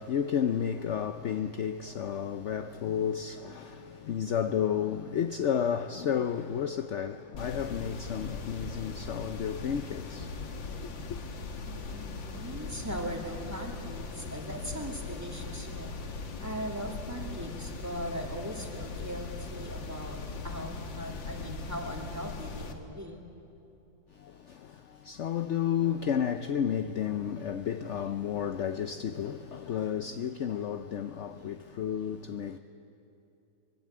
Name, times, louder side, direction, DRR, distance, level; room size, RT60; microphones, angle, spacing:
voice 1, 0.0-10.3 10.6-11.2 24.1-32.6, left 8 dB, 65° left, 0.7 m, -32 dB
sound 1, 7.3-22.7, left 4 dB, 85° left, 2.3 m, -40 dB
voice 2, 11.7-15.9 16.4-23.2, equal, 10° right, 2.3 m, -39 dB
24.0 x 22.0 x 8.7 m
omnidirectional pair, 2.0 m